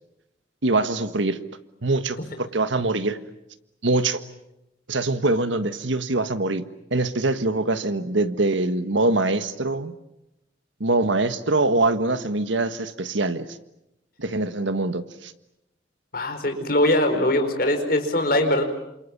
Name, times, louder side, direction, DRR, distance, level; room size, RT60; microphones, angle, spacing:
voice 1, 0.6-1.4 1.8-3.2 3.8-4.2 4.9-9.9 10.8-13.5 14.2-15.3, right 2 dB, 80° right, 11 dB, 1.6 m, -23 dB
voice 2, 16.1-18.6, left 1 dB, 50° left, 6 dB, 4.7 m, -21 dB
29.0 x 27.0 x 7.3 m, 0.86 s
head